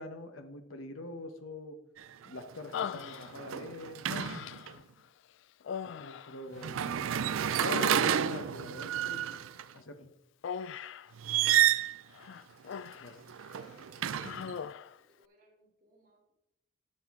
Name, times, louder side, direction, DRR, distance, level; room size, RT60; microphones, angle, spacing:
voice 1, 0.0-1.8 2.2-4.1 6.0-6.9 7.7-9.3 9.7-10.1 13.0-13.2, left 1 dB, 80° left, 7 dB, 1.0 m, -44 dB
sound 1, 2.0-2.2 2.6-4.7 6.6-9.6 11.2-12.0 13.2-14.6, right 10 dB, 80° right, 0.4 m, -30 dB
Human voice, 2.7-3.6 4.1-4.8 5.6-7.1 7.4-8.4 10.4-11.1 12.1-13.2 13.5-13.7 14.2-15.0, left 7 dB, 65° left, 0.3 m, -40 dB
voice 2, 13.5-14.6 15.1-16.3, right 1 dB, 40° right, -2 dB, 3.1 m, -64 dB
12.0 x 6.5 x 3.6 m, 0.88 s
head